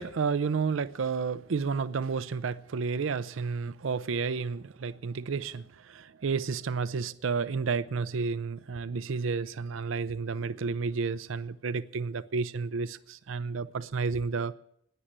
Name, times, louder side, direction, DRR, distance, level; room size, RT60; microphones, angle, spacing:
voice 1, 0.0-14.5, right 5 dB, 80° right, 0.5 m, -31 dB
16.5 x 10.0 x 7.4 m
head